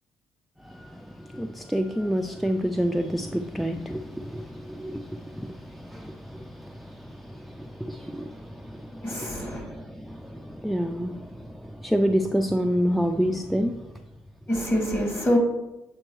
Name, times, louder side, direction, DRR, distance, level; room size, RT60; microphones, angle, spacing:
voice 1, 0.7-13.8, equal, ahead, 5 dB, 0.3 m, -29 dB
voice 2, 9.0-9.6 14.5-15.4, equal, 30° left, 1 dB, 2.2 m, -25 dB
7.6 x 4.4 x 3.1 m, 1.0 s
supercardioid pair, 75°, 8 cm